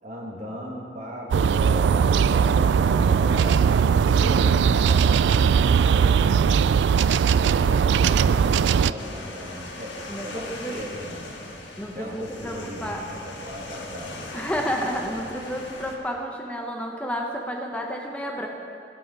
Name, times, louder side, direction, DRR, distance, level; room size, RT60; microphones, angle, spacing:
voice 1, 0.0-6.5 7.2-11.4 11.9-14.2, equal, 45° right, -1 dB, 1.8 m, -37 dB
sound 1, 1.3-8.9, right 7 dB, 80° right, 0.3 m, -19 dB
sound 2, 9.0-16.0, left 2 dB, 85° left, 1.4 m, -39 dB
voice 2, 10.1-10.7 11.8-13.0 14.3-18.5, equal, 5° left, 1 dB, 0.9 m, -31 dB
17.5 x 7.6 x 5.4 m, 2.7 s
head